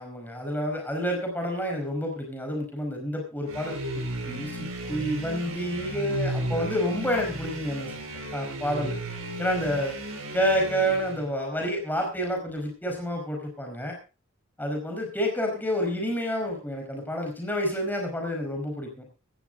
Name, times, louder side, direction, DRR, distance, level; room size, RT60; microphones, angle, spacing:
voice 1, 0.0-3.8 4.3-7.9 8.3-8.9 9.4-9.9 10.3-14.0 14.6-19.0, equal, 10° left, 2 dB, 5.0 m, -29 dB
sound 1, 3.5-11.3, right 1 dB, 75° right, 5.3 m, -34 dB
16.5 x 13.0 x 3.8 m, 0.32 s
head